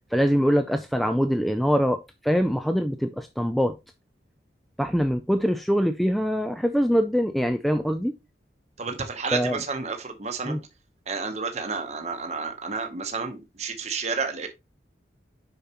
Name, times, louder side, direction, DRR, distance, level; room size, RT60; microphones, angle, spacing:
voice 1, 0.1-3.7 4.8-8.2 9.3-9.6 10.5-10.6, equal, ahead, 0.3 m, -23 dB
voice 2, 8.8-10.6 11.1-14.5, right 4 dB, 35° right, 0.9 m, -31 dB
6.8 x 5.5 x 2.9 m
head